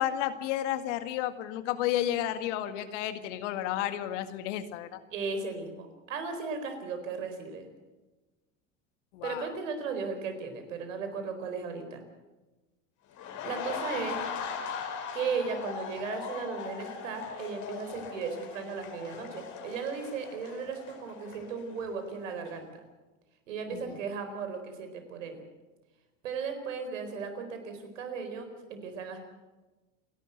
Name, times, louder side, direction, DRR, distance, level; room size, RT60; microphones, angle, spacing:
voice 1, 0.0-5.0 9.1-9.5 23.7-24.0, left 12 dB, 70° left, 10 dB, 2.0 m, -32 dB
voice 2, 5.1-7.7 9.2-12.0 13.4-14.2 15.1-22.7 23.5-25.4 26.2-29.2, right 5 dB, 80° right, 7 dB, 4.4 m, -36 dB
sound 1, 13.1-22.0 22.3-22.5, left 6 dB, 50° left, 4.6 m, -40 dB
29.0 x 11.5 x 7.9 m, 1.2 s
hypercardioid pair, 90°, 38 cm